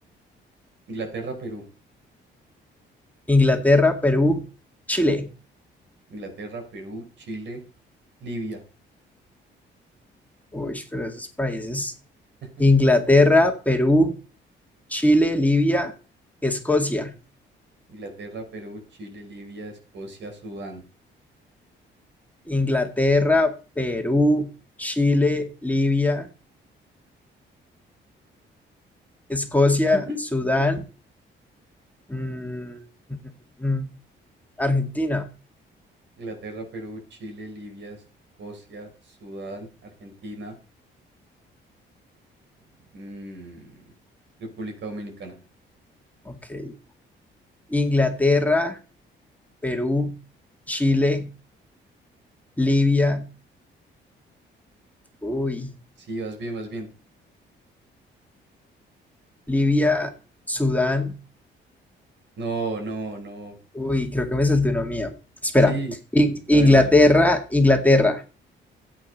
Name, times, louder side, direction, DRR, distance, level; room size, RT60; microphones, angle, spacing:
voice 1, 0.9-1.6 6.1-7.6 8.2-8.6 17.9-20.8 29.9-30.2 36.2-38.0 38.4-40.5 42.9-43.7 44.4-45.3 56.0-56.9 62.4-63.6 65.7-65.9 66.5-66.9, right 2 dB, 65° right, 4 dB, 5.1 m, -35 dB
voice 2, 3.3-4.4 4.9-5.3 10.5-11.9 12.6-14.1 14.9-15.9 16.4-17.1 22.5-24.5 24.8-26.3 29.3-30.0 30.3-30.8 32.1-32.8 33.6-33.9 34.6-35.3 46.3-46.7 47.7-48.8 49.6-50.2 50.7-51.3 52.6-53.3 55.2-55.7 59.5-60.1 60.5-61.2 63.7-65.1 65.4-65.8 66.1-68.4, left 2 dB, 10° left, 4 dB, 2.1 m, -20 dB
13.0 x 9.0 x 5.4 m, 0.36 s
cardioid pair, 90°, 20 cm